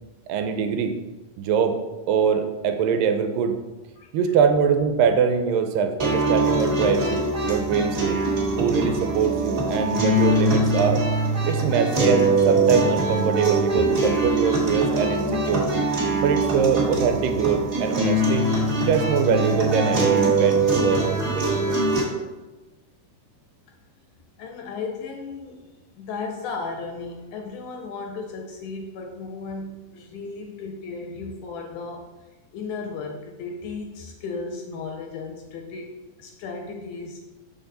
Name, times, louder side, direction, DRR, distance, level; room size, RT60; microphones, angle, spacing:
voice 1, 0.3-1.0 1.4-1.8 2.1-3.6 4.1-8.2 8.6-11.0 11.5-15.9 16.2-18.5 18.9-21.8, right 6 dB, 90° right, 7 dB, 2.3 m, -23 dB
sound 1, 6.0-22.0, right 2 dB, 35° right, 1.3 m, -22 dB
voice 2, 24.4-25.6 25.9-32.1 32.5-35.9 36.2-37.2, left 4 dB, 80° left, 3 dB, 1.9 m, -35 dB
6.7 x 5.9 x 4.0 m, 1.1 s
omnidirectional pair, 3.9 m